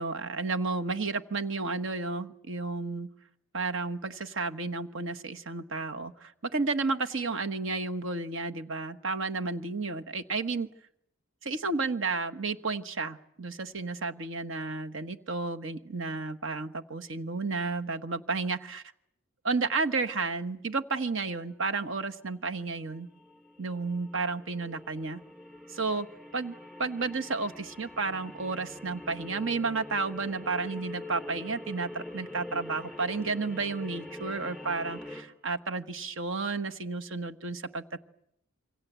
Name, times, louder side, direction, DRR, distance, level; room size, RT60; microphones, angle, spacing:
voice 1, 0.0-3.1 3.5-10.7 11.4-18.8 19.4-23.1 23.6-25.2 25.7-26.1 26.3-38.0, right 3 dB, 60° right, 7 dB, 1.2 m, -32 dB
sound 1, 20.1-20.5 22.3-22.4 22.7-35.2, left 1 dB, 5° right, 3.6 m, -44 dB
27.5 x 24.5 x 8.2 m, 0.76 s
head